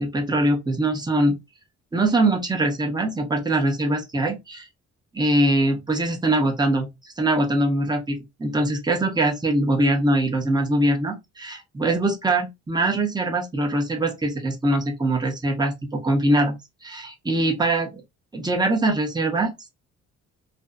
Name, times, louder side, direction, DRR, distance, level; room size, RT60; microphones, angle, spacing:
voice 1, 0.0-1.4 1.9-4.6 5.1-16.6 16.8-18.0 18.3-19.5, right 1 dB, 15° right, 0.8 m, -22 dB
2.5 x 2.3 x 2.3 m
cardioid pair, 90°, 30 cm